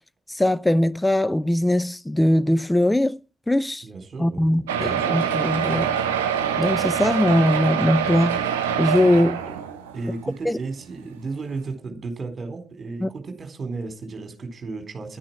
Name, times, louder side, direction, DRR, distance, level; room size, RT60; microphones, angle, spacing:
voice 1, 0.3-3.2 3.5-3.8 4.2-5.9 6.6-8.4 8.8-9.4 10.4-10.6 13.0-13.1, left 1 dB, 10° left, 0.6 m, -21 dB
voice 2, 3.8-5.2 9.9-15.2, right 3 dB, 35° right, 4.2 m, -34 dB
sound 1, 4.7-10.1 10.8-10.9 11.1-11.2 11.6-11.7, right 8 dB, 75° right, 1.2 m, -25 dB
11.5 x 10.0 x 7.4 m
figure-of-eight pair, 40°, 0 cm